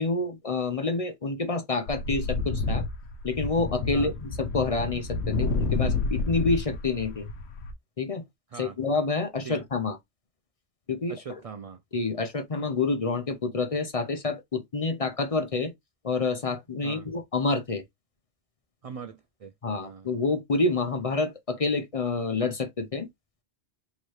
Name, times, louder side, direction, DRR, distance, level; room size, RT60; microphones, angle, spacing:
voice 1, 0.0-2.8 3.2-7.3 8.0-8.2 8.6-10.0 10.9-11.2 11.9-15.7 16.0-17.8 19.6-23.1, left 3 dB, 40° left, 0.6 m, -28 dB
sound 1, 1.9-7.7, left 3 dB, 75° left, 1.0 m, -29 dB
voice 2, 11.1-11.8 16.8-17.1 18.8-19.5 19.8-20.1, right 6 dB, 70° right, 0.3 m, -41 dB
4.4 x 2.9 x 3.1 m
omnidirectional pair, 1.1 m